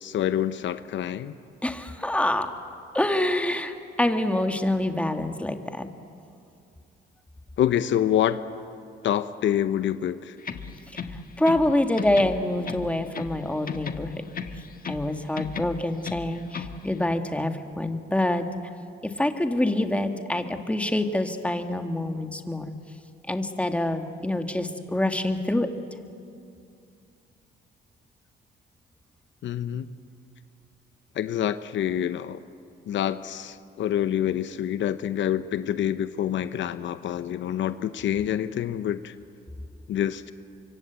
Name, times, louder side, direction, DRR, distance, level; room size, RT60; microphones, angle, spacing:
voice 1, 0.0-1.3 7.6-8.4 9.0-10.3 29.4-29.9 31.2-32.4 32.9-39.1 39.9-40.3, left 10 dB, 70° left, 12 dB, 0.8 m, -26 dB
voice 2, 1.6-2.5 2.9-5.9 11.1-14.2 14.9-18.5 19.0-22.7 23.3-25.7, left 1 dB, 5° left, 6 dB, 1.9 m, -26 dB
sound 1, 10.4-11.7 12.0-13.4 13.7-15.1 15.4-16.8, left 6 dB, 45° left, 1.6 m, -35 dB
25.0 x 24.5 x 8.2 m, 2.5 s
cardioid pair, 90°, 20 cm